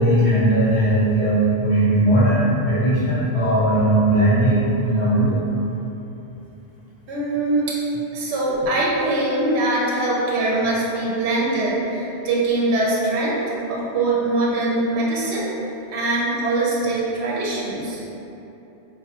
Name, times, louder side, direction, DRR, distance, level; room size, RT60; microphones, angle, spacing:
voice 1, 0.0-5.4, right 1 dB, 65° left, -10 dB, 0.9 m, -18 dB
voice 2, 7.1-7.7 8.1-13.4 13.7-15.5 15.9-18.0, right 2 dB, 80° right, -5 dB, 0.9 m, -22 dB
3.9 x 2.2 x 2.8 m, 3.0 s
omnidirectional pair, 1.1 m